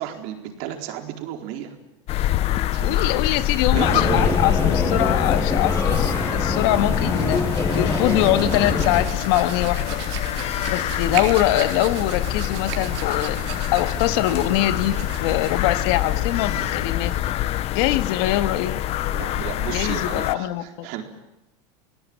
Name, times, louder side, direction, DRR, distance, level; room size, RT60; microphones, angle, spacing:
voice 1, 0.0-1.7 2.2-3.3 3.7-4.4 19.1-21.0, right 10 dB, 65° right, 3 dB, 4.3 m, -33 dB
sound 1, 2.1-20.3, left 13 dB, 45° left, 0.9 m, -25 dB
voice 2, 2.8-7.4 7.7-10.0 10.7-13.4 13.7-17.1 17.7-18.8 19.7-20.9, left 14 dB, 70° left, 9 dB, 1.8 m, -23 dB
sound 2, 3.7-9.0, left 3 dB, 20° left, 7.6 m, -24 dB
Hands, 6.6-17.9, right 10 dB, 85° right, 4.0 m, -37 dB
28.5 x 19.0 x 8.9 m, 0.98 s
supercardioid pair, 120°, 14 cm